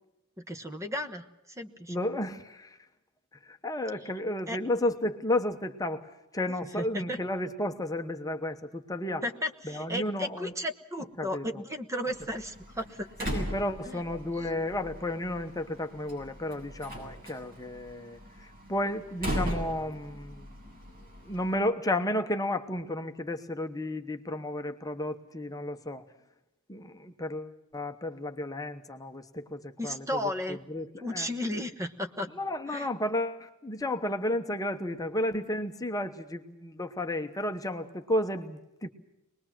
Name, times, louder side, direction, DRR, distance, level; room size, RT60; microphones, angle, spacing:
voice 1, 0.4-2.0 4.5-4.6 6.8-7.2 9.2-13.3 13.9-14.0 14.4-14.5 29.8-30.6 31.0-32.3 32.7-32.9, left 1 dB, 15° right, 7 dB, 1.2 m, -34 dB
voice 2, 1.9-2.8 3.4-6.1 6.3-9.2 9.6-10.5 11.2-11.4 13.3-20.5 21.2-26.0 26.7-30.2 30.5-30.9 31.1-31.3 32.3-38.9, left 1 dB, 15° left, 6 dB, 1.1 m, -32 dB
Slam, 12.1-21.6, equal, 40° right, 7.4 m, -39 dB
24.5 x 20.5 x 7.4 m, 0.89 s
head